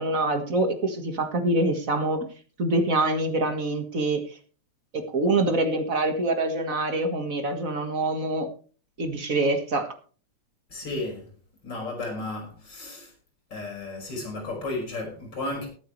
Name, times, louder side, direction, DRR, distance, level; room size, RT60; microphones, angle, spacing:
voice 1, 0.0-2.3 2.6-4.4 4.9-8.5 9.0-9.9, right 2 dB, 35° right, 1.5 m, -25 dB
voice 2, 10.7-11.2 11.6-13.1 13.5-15.7, left 2 dB, 35° left, 6.2 m, -33 dB
21.0 x 9.3 x 3.2 m
omnidirectional pair, 3.5 m